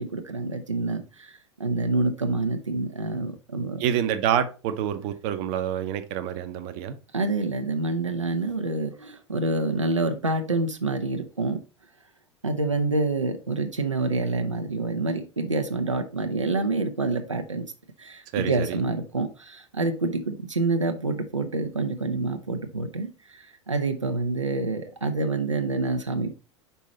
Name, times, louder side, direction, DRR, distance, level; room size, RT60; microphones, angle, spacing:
voice 1, 0.0-3.8 7.1-11.6 12.4-17.6 18.0-26.3, right 3 dB, 90° right, 5 dB, 0.7 m, -27 dB
voice 2, 3.8-7.0 18.3-18.8, right 9 dB, 50° right, 9 dB, 0.9 m, -27 dB
5.5 x 4.6 x 4.2 m, 0.33 s
figure-of-eight pair, 85°, 15 cm